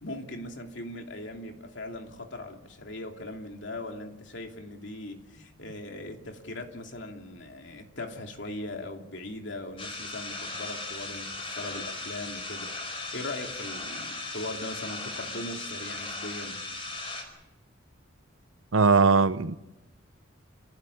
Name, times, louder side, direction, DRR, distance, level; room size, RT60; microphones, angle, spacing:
voice 1, 0.0-12.7 13.1-16.7, left 1 dB, 65° left, 2.9 m, -39 dB
sound 1, 9.8-17.2, left 3 dB, 25° left, 4.9 m, -37 dB
voice 2, 18.7-19.5, right 4 dB, 85° right, 0.8 m, -20 dB
27.5 x 16.0 x 8.6 m
head